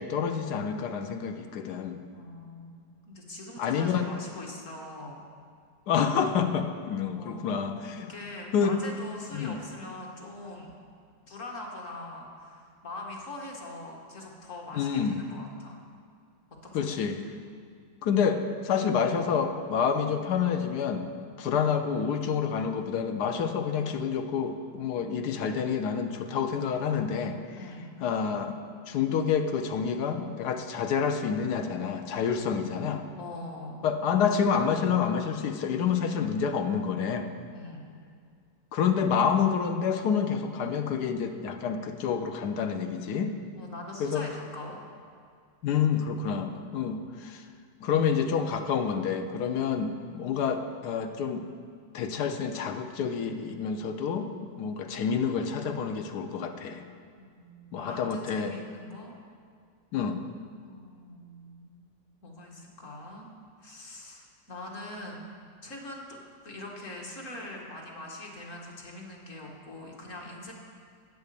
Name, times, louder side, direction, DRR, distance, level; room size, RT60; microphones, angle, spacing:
voice 1, 0.0-2.0 3.6-4.1 5.9-8.1 8.5-8.8 9.3-9.6 14.7-15.2 16.7-17.2 18.0-21.0 21.4-27.4 28.0-28.5 28.9-33.0 33.8-37.3 38.7-43.3 44.0-44.2 45.6-47.4 47.8-51.4 51.9-56.8 57.7-58.5 59.9-60.2, left 7 dB, 70° left, 7 dB, 1.2 m, -28 dB
voice 2, 2.1-2.8 3.1-5.2 7.1-7.5 8.1-10.8 11.3-15.8 16.7-17.1 21.4-21.6 27.6-27.9 33.2-33.8 37.5-37.9 43.5-44.9 49.5-49.8 57.2-59.1 60.6-61.8 62.2-63.3 63.6-65.4 65.6-66.0 66.4-70.5, left 1 dB, 45° left, -1 dB, 1.8 m, -42 dB
8.5 x 8.1 x 6.8 m, 2.2 s
omnidirectional pair, 1.9 m